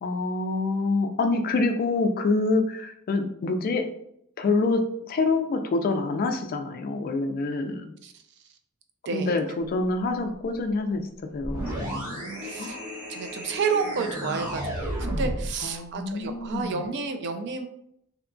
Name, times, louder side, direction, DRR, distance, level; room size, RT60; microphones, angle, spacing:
voice 1, 0.0-3.9 4.4-4.8 5.1-7.9 9.1-11.1 11.3-12.1 12.6-12.8 15.6-16.8, left 3 dB, 40° left, 6 dB, 0.3 m, -26 dB
voice 2, 9.1-9.4 12.4-12.8 13.1-17.7, right 5 dB, 55° right, 6 dB, 0.3 m, -30 dB
sound 1, 11.4-15.6, right 1 dB, 15° right, 0.8 m, -32 dB
2.7 x 2.2 x 2.5 m, 0.73 s
head